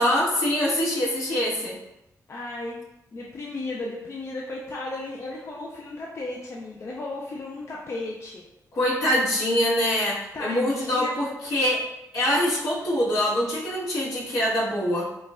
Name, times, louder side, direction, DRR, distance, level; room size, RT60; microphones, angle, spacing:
voice 1, 0.0-1.8 8.7-11.8 12.1-15.1, equal, 75° left, -8 dB, 1.4 m, -24 dB
voice 2, 2.3-2.8 3.1-8.5 10.3-11.1, left 2 dB, 45° left, -3 dB, 0.5 m, -34 dB
5.1 x 2.2 x 2.4 m, 0.89 s
cardioid pair, 85°, 6 cm